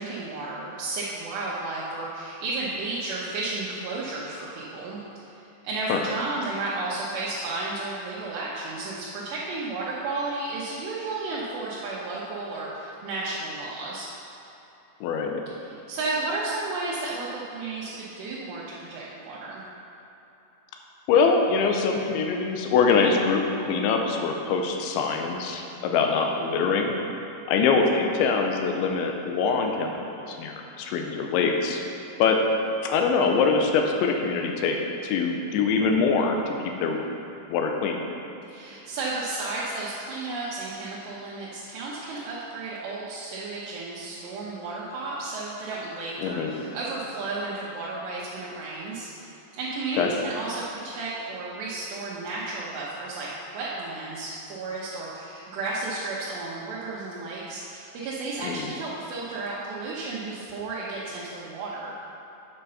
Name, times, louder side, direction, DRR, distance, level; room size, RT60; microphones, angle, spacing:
voice 1, 0.0-5.0 5.3-14.1 15.6-19.6 38.5-53.3 53.5-61.9, right 3 dB, 75° right, -7 dB, 2.9 m, -33 dB
voice 2, 15.0-15.4 21.1-26.9 27.5-31.8 32.2-32.4 32.8-34.8 35.0-37.0 37.5-38.0 46.2-46.5 50.0-50.1 58.4-58.6, left 5 dB, 90° left, 3 dB, 3.0 m, -24 dB
8.6 x 5.3 x 5.6 m, 3.0 s
omnidirectional pair, 5.3 m